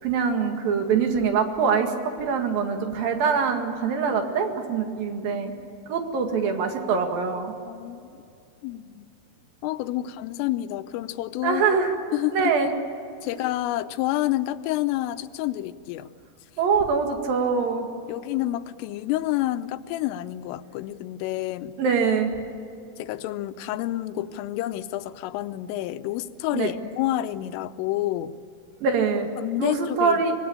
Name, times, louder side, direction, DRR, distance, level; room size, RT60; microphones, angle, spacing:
voice 1, 0.0-5.5 5.9-7.5 11.4-11.9 12.3-12.7 13.3-13.4 16.6-17.9 21.8-22.3 26.5-26.7 28.8-29.3 29.6-30.3, right 5 dB, 55° right, 4 dB, 3.3 m, -24 dB
voice 2, 7.7-8.0 8.6-9.1 9.6-11.7 12.1-12.5 13.2-16.1 18.1-21.7 23.0-28.4 29.4-30.2, left 15 dB, 85° left, 12 dB, 3.4 m, -29 dB
25.5 x 20.0 x 8.8 m, 2.5 s
omnidirectional pair, 5.7 m